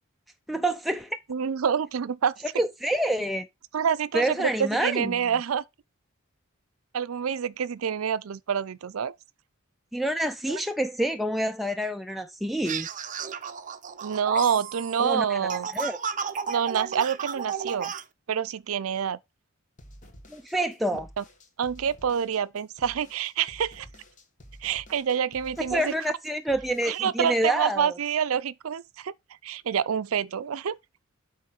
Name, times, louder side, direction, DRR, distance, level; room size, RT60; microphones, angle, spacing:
voice 1, 0.5-1.2 2.6-3.5 4.1-5.2 9.9-12.9 15.0-16.0 20.3-21.1 25.7-28.0, right 1 dB, ahead, 0.4 m, -27 dB
voice 2, 1.3-2.3 3.7-5.6 6.9-9.1 10.5-10.6 14.0-15.7 16.5-17.9 18.3-19.2 21.2-21.3 21.6-23.9 24.6-25.9 26.9-29.1 29.4-30.8, right 7 dB, 75° right, 0.5 m, -27 dB
sound 1, 12.6-18.0, right 6 dB, 40° right, 0.6 m, -33 dB
sound 2, 19.8-27.0, equal, 40° left, 1.4 m, -50 dB
8.4 x 3.2 x 6.3 m
head